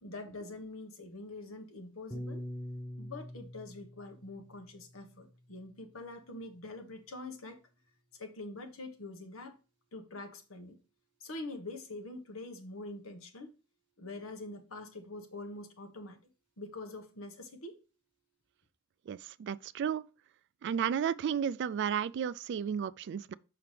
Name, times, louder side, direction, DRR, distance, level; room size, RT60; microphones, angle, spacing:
voice 1, 0.0-2.4 3.0-7.6 8.1-9.6 9.9-10.8 11.2-13.5 14.0-16.2 16.6-17.7, left 2 dB, 80° left, 1.2 m, -45 dB
Piano, 2.1-6.5, equal, 10° left, 0.6 m, -45 dB
voice 2, 19.1-20.0 20.6-23.3, right 8 dB, 55° right, 0.3 m, -33 dB
5.9 x 5.7 x 3.2 m
head